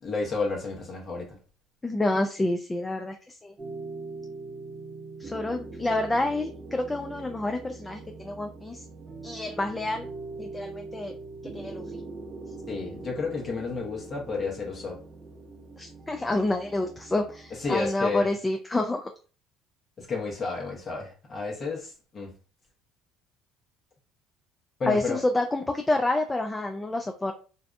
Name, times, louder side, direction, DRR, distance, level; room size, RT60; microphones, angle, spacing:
voice 1, 0.0-1.4 12.7-15.0 17.6-18.3 20.0-22.3 24.8-25.2, left 4 dB, 40° left, -2 dB, 0.9 m, -31 dB
voice 2, 1.8-3.2 3.4-3.5 5.2-8.8 9.2-10.1 10.4-11.2 11.4-11.8 15.8-19.1 24.9-27.3, left 2 dB, 20° left, 5 dB, 0.3 m, -28 dB
sound 1, 3.6-17.9, right 3 dB, 25° right, 0.7 m, -42 dB
2.6 x 2.1 x 2.4 m, 0.37 s
hypercardioid pair, 70°, 0 cm